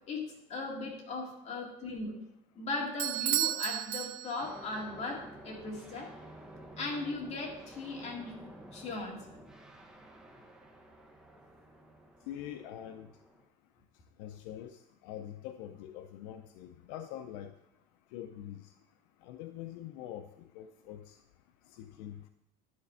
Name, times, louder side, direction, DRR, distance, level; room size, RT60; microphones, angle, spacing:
voice 1, 0.1-2.1 2.6-6.1 6.8-8.3 8.7-9.2, left 3 dB, 35° left, -1 dB, 2.2 m, -38 dB
Bell / Doorbell, 3.0-4.7, right 15 dB, 55° right, 0.6 m, -33 dB
sound 1, 4.4-13.4, right 1 dB, 5° right, 0.9 m, -52 dB
voice 2, 12.3-13.1 14.2-17.5 18.1-18.6 19.2-20.3 20.5-21.2 21.7-22.3, left 11 dB, 75° left, 8 dB, 0.6 m, -44 dB
11.5 x 4.2 x 5.6 m, 0.85 s
cardioid pair, 150°, 20 cm